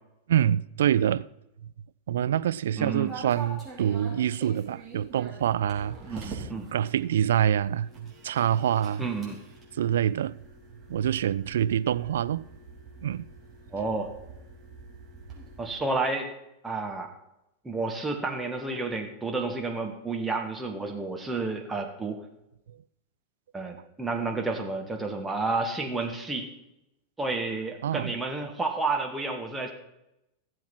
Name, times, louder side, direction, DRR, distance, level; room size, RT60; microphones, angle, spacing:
voice 1, 0.3-1.3 2.1-6.4 6.7-9.1 9.8-10.4 10.9-12.4 13.0-13.2 27.8-28.1, right 10 dB, 60° right, 0.3 m, -26 dB
voice 2, 2.8-3.1 6.1-6.7 9.0-9.4 13.7-14.1 15.6-16.3 16.6-17.1 17.6-22.2 23.5-26.5 27.2-29.7, right 3 dB, 10° right, 1.8 m, -30 dB
sound 1, 3.1-15.7, right 3 dB, 25° right, 4.6 m, -45 dB
15.5 x 7.7 x 6.1 m
figure-of-eight pair, 90°, 0 cm